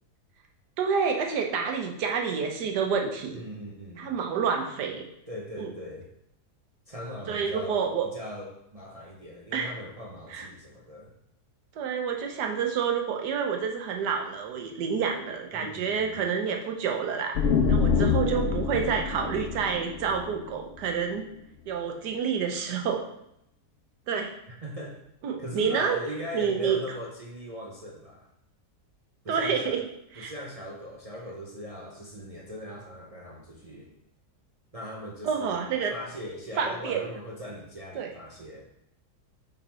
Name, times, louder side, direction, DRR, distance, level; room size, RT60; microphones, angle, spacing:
voice 1, 0.8-3.4 4.0-5.0 5.6-5.7 7.3-8.1 9.5-9.7 10.3-10.5 11.8-17.4 17.7-21.3 21.7-23.0 24.1-24.3 25.2-26.0 26.3-26.8 29.3-29.8 30.2-30.3 35.2-35.9 36.6-37.0 37.9-38.1, right 6 dB, 85° right, 3 dB, 1.5 m, -28 dB
voice 2, 3.3-4.1 5.3-6.0 6.9-11.1 15.5-16.2 18.2-18.5 24.5-25.0 25.4-28.3 29.2-29.8 30.2-33.9 34.7-38.7, equal, 35° right, -3 dB, 0.6 m, -39 dB
sound 1, 17.3-21.0, left 6 dB, 85° left, 0.5 m, -26 dB
5.4 x 5.2 x 4.3 m, 0.78 s
omnidirectional pair, 1.7 m